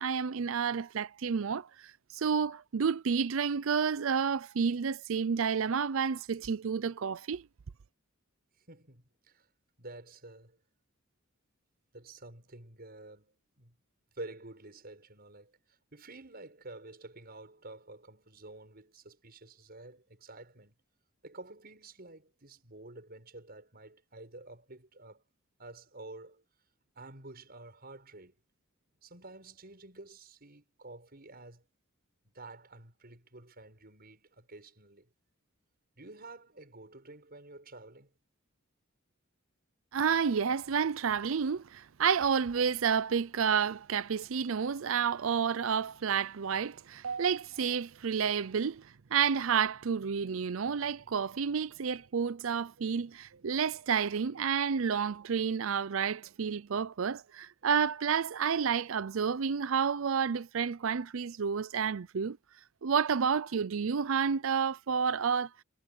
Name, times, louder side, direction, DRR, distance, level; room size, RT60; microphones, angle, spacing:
voice 1, 0.0-7.5 39.9-62.4 62.8-65.5, right 6 dB, 70° right, 0.5 m, -30 dB
voice 2, 8.7-9.5 9.8-10.6 11.9-13.8 14.1-20.7 21.2-25.2 25.6-26.4 26.9-28.3 29.0-31.6 32.2-35.1 36.0-38.1, right 2 dB, 50° right, 6.4 m, -50 dB
head